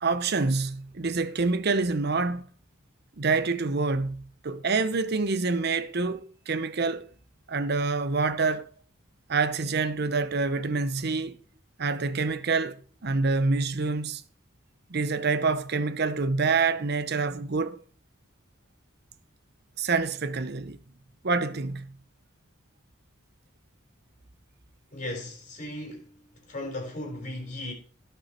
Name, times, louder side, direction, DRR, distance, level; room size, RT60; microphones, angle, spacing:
voice 1, 0.0-2.5 3.2-7.1 7.5-8.7 9.3-11.4 11.8-14.2 14.9-17.8 19.8-20.8 21.2-21.9, right 4 dB, 55° right, 0.8 m, -27 dB
voice 2, 24.9-27.7, left 1 dB, 40° left, 4.2 m, -37 dB
17.0 x 5.7 x 4.3 m
head